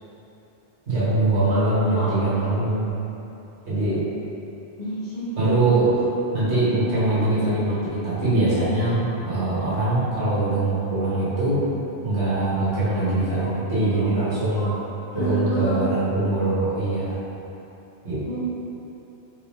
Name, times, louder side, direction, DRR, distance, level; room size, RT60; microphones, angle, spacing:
voice 1, 0.9-2.9 3.7-4.1 5.3-11.6 12.0-14.8 15.1-17.2 18.0-18.4, right 2 dB, 80° right, -11 dB, 1.7 m, -22 dB
voice 2, 1.8-2.4 4.8-5.3 12.7-13.5 13.9-14.1 14.6-14.8 15.1-15.9 18.2-18.4, right 2 dB, 40° left, -10 dB, 1.0 m, -31 dB
4.0 x 3.5 x 3.7 m, 3.0 s
omnidirectional pair, 1.1 m